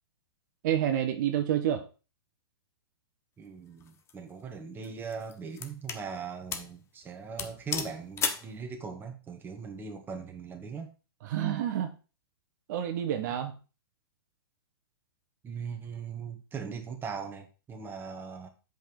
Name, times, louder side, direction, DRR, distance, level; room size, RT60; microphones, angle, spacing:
voice 1, 0.6-1.9 11.2-11.9 12.7-13.5, right 10 dB, 50° right, 1.1 m, -28 dB
voice 2, 3.4-10.9 15.4-18.5, right 5 dB, 15° right, 1.5 m, -40 dB
sound 1, 3.8-4.1 4.8-6.1 6.5-6.8 7.0-7.1 7.4-8.5, left 6 dB, 20° left, 0.9 m, -34 dB
7.4 x 5.4 x 4.7 m
hypercardioid pair, 120°, 13 cm